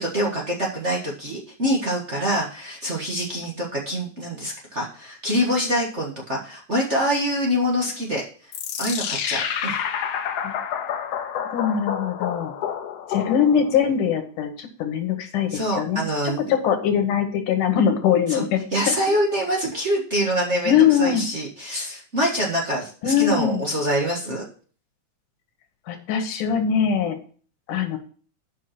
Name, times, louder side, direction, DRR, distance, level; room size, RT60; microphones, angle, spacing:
voice 1, 0.0-8.2 8.8-9.8 15.5-16.5 18.3-18.4 18.7-24.4, equal, 35° right, -2 dB, 1.2 m, -25 dB
sound 1, 8.5-13.8, left 8 dB, 65° left, 1.7 m, -29 dB
voice 2, 11.5-12.5 13.1-16.0 16.5-18.6 20.7-21.2 23.0-23.6 25.9-27.2 27.7-28.0, left 8 dB, 90° left, 4 dB, 2.7 m, -21 dB
8.4 x 5.6 x 5.9 m, 0.43 s
omnidirectional pair, 3.5 m